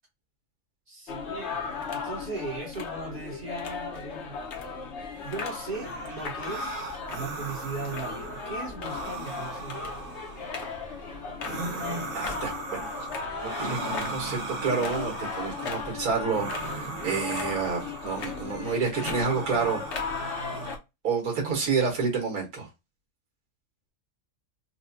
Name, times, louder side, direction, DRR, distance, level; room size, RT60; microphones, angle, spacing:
voice 1, 0.9-4.4 5.2-9.9, right 3 dB, 40° right, 1.3 m, -38 dB
sound 1, 1.1-20.8, left 5 dB, 60° left, 0.9 m, -37 dB
sound 2, 5.7-20.8, right 2 dB, 60° right, 1.2 m, -38 dB
voice 2, 12.1-12.9 13.4-19.8 21.0-22.7, right 5 dB, 85° right, 1.8 m, -29 dB
4.2 x 2.3 x 2.6 m
omnidirectional pair, 1.5 m